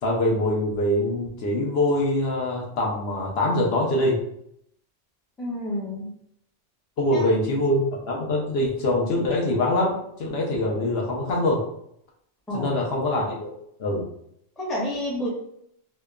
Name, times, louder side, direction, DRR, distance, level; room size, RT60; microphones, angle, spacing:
voice 1, 0.0-4.2 7.0-11.6 12.5-13.5 13.8-14.0, left 1 dB, 65° left, -2 dB, 0.8 m, -24 dB
voice 2, 5.4-6.1 7.1-7.2 12.5-12.8 14.6-15.3, left 1 dB, ahead, -5 dB, 0.4 m, -29 dB
2.8 x 2.1 x 2.3 m, 0.72 s
omnidirectional pair, 1.2 m